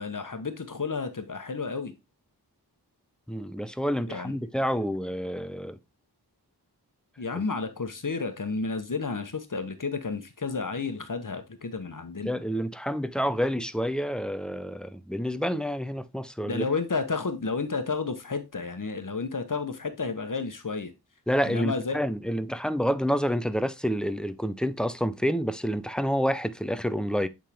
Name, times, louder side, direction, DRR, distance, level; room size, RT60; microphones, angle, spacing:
voice 1, 0.0-1.9 4.1-4.4 7.2-12.3 16.5-20.9 21.4-22.0, left 4 dB, 50° left, 1.1 m, -31 dB
voice 2, 3.3-5.8 7.3-7.4 12.2-16.6 21.3-27.3, equal, ahead, 0.5 m, -28 dB
8.5 x 3.6 x 3.4 m
wide cardioid pair, 45°, 40 cm